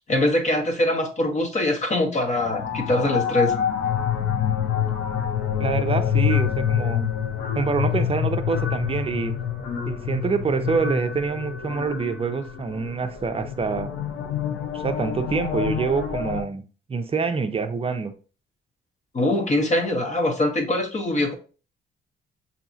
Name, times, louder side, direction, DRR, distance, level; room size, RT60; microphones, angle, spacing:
voice 1, 0.1-3.5 19.1-21.3, left 1 dB, 35° left, 1.0 m, -23 dB
sound 1, 2.3-16.4, left 8 dB, 75° left, 0.7 m, -26 dB
voice 2, 5.6-7.1 7.6-9.4 9.9-13.9 14.7-16.6 16.9-18.1, right 5 dB, 30° right, 0.6 m, -26 dB
5.9 x 2.8 x 2.7 m
cardioid pair, 90°, 20 cm